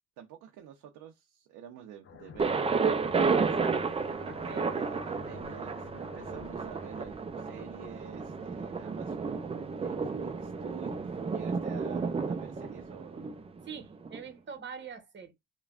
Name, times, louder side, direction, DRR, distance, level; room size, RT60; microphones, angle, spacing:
voice 1, 0.2-2.8 3.2-4.0 4.4-13.3, right 9 dB, 90° right, 0.6 m, -48 dB
sound 1, 2.0-7.2, left 6 dB, 45° left, 0.6 m, -51 dB
Thunder, 2.4-14.2, right 4 dB, 20° right, 0.4 m, -32 dB
voice 2, 4.2-4.8 13.7-15.3, right 6 dB, 40° right, 0.9 m, -44 dB
3.3 x 2.2 x 2.4 m
cardioid pair, 90°, 30 cm